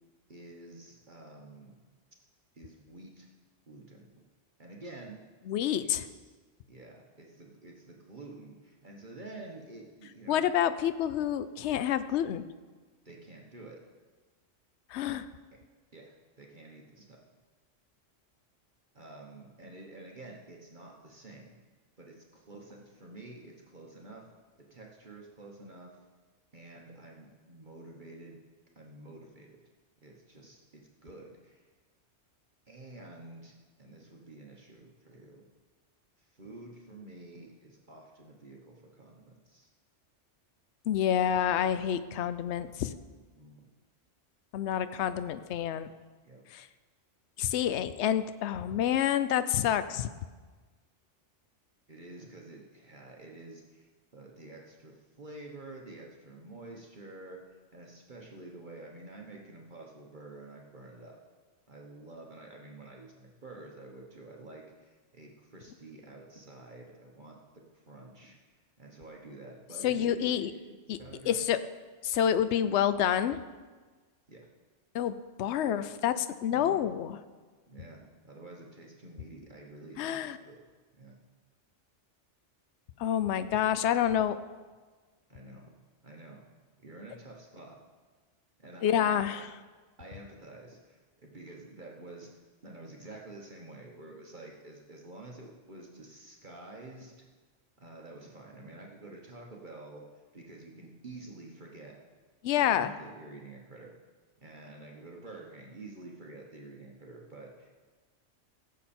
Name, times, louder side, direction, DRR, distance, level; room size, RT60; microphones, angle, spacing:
voice 1, 0.3-1.7 2.5-3.3 3.7-4.3 4.6-5.2 5.8-6.4 6.7-10.5 13.0-13.8 15.9-17.2 18.9-21.6 22.0-24.2 24.7-26.0 26.5-28.4 28.8-29.6 30.0-31.7 32.7-33.5 33.8-35.4 36.2-39.7 43.3-43.7 46.2-46.4 51.9-57.4 57.7-61.2 61.7-67.4 67.7-71.4 74.3-74.5 76.5-76.8 77.7-80.6 81.0-81.1 85.3-85.7 86.0-86.4 86.8-87.8 88.6-89.4 90.0-92.3 92.6-97.1 97.8-100.0 100.3-102.0 102.6-103.9 104.4-107.7, right 2 dB, 45° right, -1 dB, 1.3 m, -49 dB
voice 2, 5.5-6.0 10.3-12.4 14.9-15.2 40.9-42.9 44.5-45.9 46.5-46.7 47.4-50.1 69.8-70.5 70.9-71.0 71.3-71.6 72.0-73.4 74.9-77.2 80.0-80.4 83.0-84.4 88.8-89.5 102.4-102.9, left 10 dB, 70° left, 12 dB, 0.9 m, -28 dB
16.5 x 7.4 x 4.3 m, 1.4 s
omnidirectional pair, 1.2 m